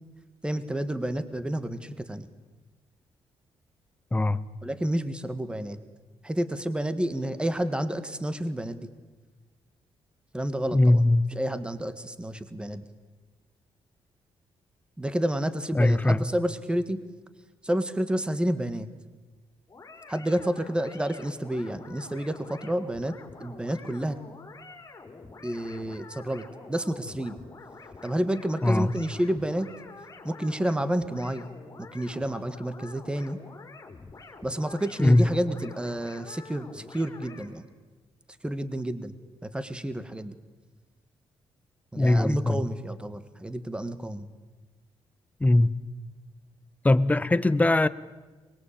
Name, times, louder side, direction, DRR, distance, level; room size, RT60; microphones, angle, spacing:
voice 1, 0.4-2.3 4.6-5.8 6.2-8.9 10.3-11.0 11.4-12.8 15.0-17.0 17.6-18.9 20.1-23.1 23.4-24.2 25.4-27.4 28.0-29.7 30.2-31.5 31.8-33.4 34.4-37.7 38.4-39.1 39.4-40.4 41.9-44.3, right 1 dB, 10° right, 1.6 m, -30 dB
voice 2, 10.7-11.3 15.7-16.2 28.6-28.9 35.0-35.3 42.0-42.7 45.4-45.7 46.8-47.9, left 2 dB, 15° left, 0.9 m, -21 dB
sound 1, 19.7-37.5, left 3 dB, 30° left, 4.3 m, -47 dB
23.5 x 21.5 x 8.8 m
cardioid pair, 100°, 10 cm